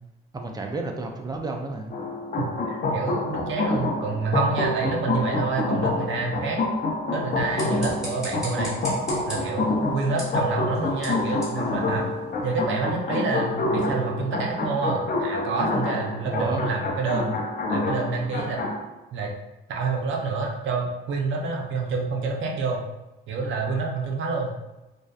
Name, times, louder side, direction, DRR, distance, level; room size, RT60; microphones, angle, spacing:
voice 1, 0.3-1.9 16.2-16.6, right 3 dB, 20° right, 2 dB, 0.3 m, -31 dB
sound 1, 1.9-18.8, left 2 dB, 45° left, 0.5 m, -27 dB
voice 2, 2.4-6.6 7.1-8.8 9.3-12.2 12.4-17.3 17.7-18.6 19.1-19.3 19.7-22.9 23.3-24.6, right 4 dB, 75° right, 0 dB, 0.5 m, -28 dB
sound 2, 7.3-12.6, equal, ahead, 1.2 m, -40 dB
2.6 x 2.1 x 2.2 m, 1.0 s
cardioid pair, 90°, 20 cm